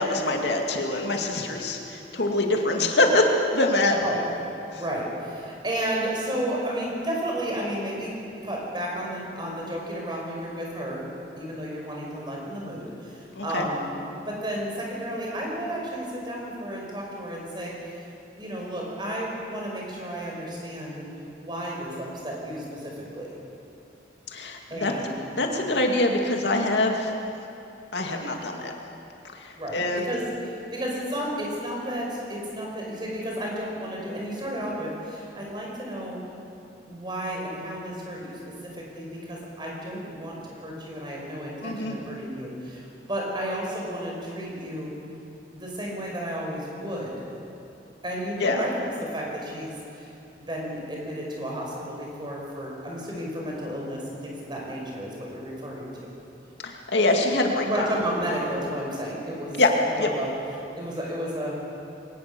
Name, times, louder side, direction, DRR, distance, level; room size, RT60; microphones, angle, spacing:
voice 1, 0.0-3.2 3.5-4.0 4.7-4.8 13.3-13.7 24.3-27.1 27.9-28.7 29.3-30.1 41.6-42.0 48.4-48.6 56.6-57.9 59.6-59.7 60.0-60.1, left 2 dB, 80° left, 2 dB, 2.4 m, -24 dB
voice 2, 4.7-8.1 8.4-11.1 11.4-13.9 14.2-17.7 18.4-21.0 21.4-23.4 24.7-25.2 29.6-36.2 36.9-44.9 45.5-47.3 48.0-50.1 50.5-56.1 57.6-59.6 59.9-60.3 60.7-61.6, right 1 dB, 25° right, -2 dB, 5.6 m, -32 dB
22.5 x 19.0 x 6.9 m, 2.7 s
head